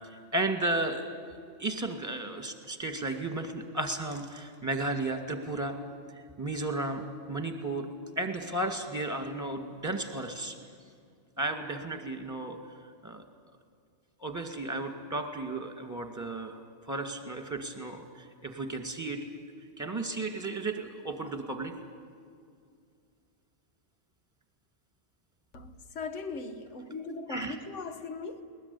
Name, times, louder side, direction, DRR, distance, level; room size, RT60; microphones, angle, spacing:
voice 1, 0.3-1.1 1.6-5.8 6.4-7.0 7.3-7.9 8.2-10.5 11.4-12.6 13.0-13.2 14.2-19.2 19.8-21.7 27.3-27.6, right 2 dB, 15° right, 2.2 m, -34 dB
voice 2, 25.5-28.4, left 3 dB, 75° left, 1.7 m, -39 dB
21.0 x 20.0 x 9.9 m
omnidirectional pair, 1.3 m